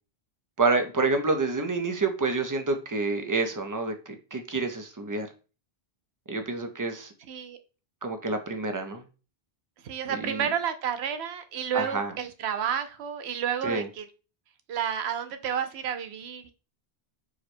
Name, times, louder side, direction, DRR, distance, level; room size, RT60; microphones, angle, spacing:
voice 1, 0.6-5.3 6.3-7.1 8.0-9.0 10.1-10.5 11.7-12.1 13.6-13.9, right 3 dB, 30° right, 5 dB, 0.4 m, -28 dB
voice 2, 7.3-7.6 9.8-14.1 14.7-16.5, right 8 dB, 85° right, 9 dB, 0.9 m, -31 dB
4.7 x 2.1 x 4.3 m, 0.34 s
omnidirectional pair, 1.1 m